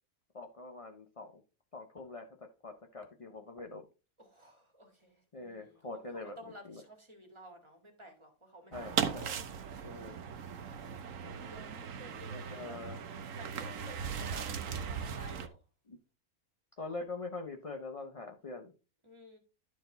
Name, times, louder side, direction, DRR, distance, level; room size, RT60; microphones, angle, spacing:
voice 1, 0.3-1.4 1.7-3.9 5.3-6.8 8.7-9.3 9.8-10.2 11.2-11.5 12.3-13.0 15.9-16.0 16.8-18.7, left 3 dB, 30° left, 0.7 m, -44 dB
voice 2, 4.2-9.1 10.2-10.6 11.5-12.8 13.4-15.6 19.0-19.4, equal, 20° right, 2.0 m, -54 dB
sound 1, 8.7-15.5, right 7 dB, 65° right, 1.1 m, -38 dB
12.0 x 4.5 x 3.9 m
omnidirectional pair, 1.5 m